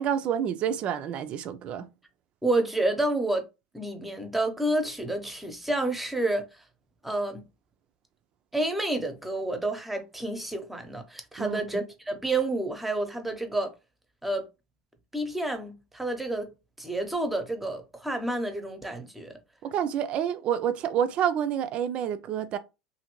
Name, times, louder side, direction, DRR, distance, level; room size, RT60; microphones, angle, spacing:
voice 1, 0.0-1.9 11.4-11.7 19.6-22.6, right 9 dB, 45° right, 0.4 m, -28 dB
voice 2, 2.4-3.5 3.7-6.5 7.0-7.5 8.5-13.7 14.2-14.5 15.1-16.5 16.8-19.3, right 2 dB, 5° right, 0.8 m, -29 dB
2.7 x 2.5 x 2.9 m
hypercardioid pair, 90°, 3 cm